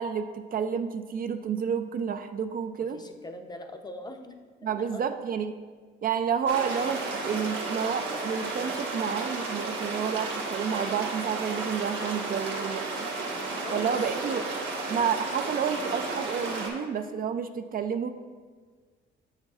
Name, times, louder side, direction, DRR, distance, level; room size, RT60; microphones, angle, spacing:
voice 1, 0.0-3.0 4.6-5.5 6.0-12.9 13.7-14.5 14.9-18.1, right 7 dB, 45° right, 8 dB, 0.4 m, -30 dB
voice 2, 2.9-4.4 4.7-5.0 13.3-13.9, left 1 dB, 20° left, 6 dB, 0.6 m, -42 dB
sound 1, 6.5-16.7, right 3 dB, 70° right, 1.4 m, -33 dB
7.3 x 6.4 x 2.4 m, 1.5 s
cardioid pair, 90°, 20 cm